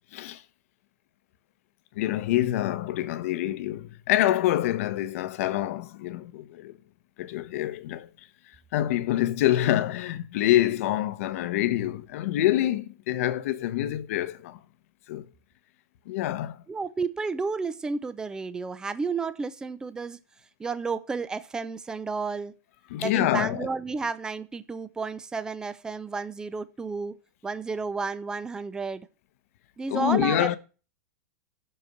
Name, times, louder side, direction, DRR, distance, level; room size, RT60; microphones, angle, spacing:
voice 1, 0.1-0.4 2.0-6.7 7.2-8.1 8.7-14.6 15.1-15.2 16.1-16.6 22.9-23.7 29.9-30.6, left 13 dB, 60° left, 1.1 m, -26 dB
voice 2, 16.7-20.2 20.6-22.5 23.0-27.1 27.4-29.1 29.8-30.5, right 4 dB, 10° right, 0.6 m, -31 dB
12.5 x 4.5 x 7.9 m
supercardioid pair, 155°, 9 cm